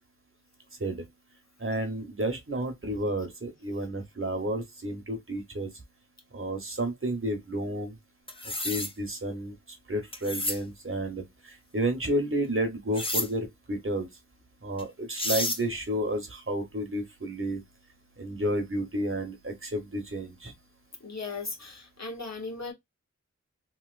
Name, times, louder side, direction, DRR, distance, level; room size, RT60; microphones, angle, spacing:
voice 1, 1.6-5.7 6.3-8.0 8.6-9.5 9.9-14.1 14.6-17.6 18.2-20.5, right 1 dB, 45° right, 1.0 m, -31 dB
sound 1, 8.3-8.9 10.1-10.6 12.9-13.3 14.8-14.9 15.1-15.6, left 1 dB, 20° left, 0.7 m, -30 dB
voice 2, 21.0-22.7, left 3 dB, 70° left, 1.1 m, -37 dB
3.0 x 2.8 x 2.4 m
wide cardioid pair, 50°, 29 cm